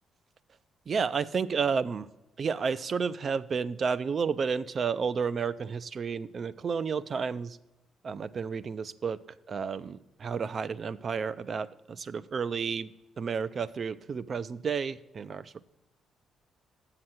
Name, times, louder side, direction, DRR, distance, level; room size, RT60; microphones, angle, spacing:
voice 1, 0.9-2.1 2.4-7.6 8.0-9.2 9.5-12.9 13.2-15.6, right 6 dB, 45° right, 16 dB, 0.4 m, -31 dB
7.7 x 5.8 x 7.8 m, 0.95 s
cardioid pair, 90°, 0 cm